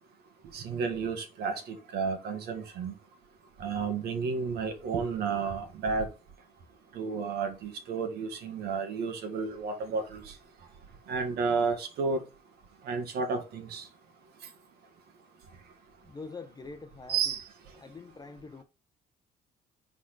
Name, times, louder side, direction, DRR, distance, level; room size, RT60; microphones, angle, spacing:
voice 1, 0.5-2.9 3.6-6.1 7.0-10.2 11.1-12.2 12.9-13.8 17.1-17.4, right 5 dB, 70° right, 1.8 m, -31 dB
voice 2, 16.0-17.3 17.8-18.6, left 4 dB, 25° left, 0.7 m, -44 dB
4.8 x 4.2 x 5.9 m
cardioid pair, 110°, 17 cm